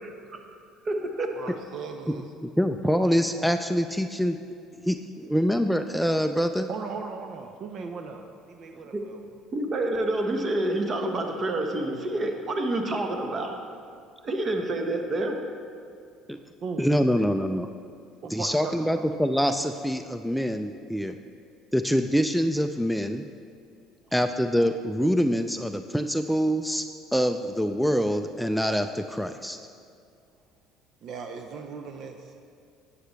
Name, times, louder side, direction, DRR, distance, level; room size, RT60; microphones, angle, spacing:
voice 1, 0.0-0.4 0.8-1.3 8.9-9.0 9.5-13.6 14.2-15.4, right 1 dB, 40° right, 4 dB, 1.2 m, -28 dB
voice 2, 1.3-2.3 6.7-9.2 16.6-17.3 18.2-19.1 31.0-32.3, right 5 dB, 55° right, 5 dB, 0.6 m, -38 dB
voice 3, 2.6-4.4 4.9-6.7 16.3-16.4 16.8-17.7 18.3-21.2 21.7-23.3 24.1-26.8 27.1-29.6, equal, ahead, 7 dB, 0.4 m, -25 dB
11.0 x 8.5 x 3.2 m, 2.4 s
hypercardioid pair, 65°, 0 cm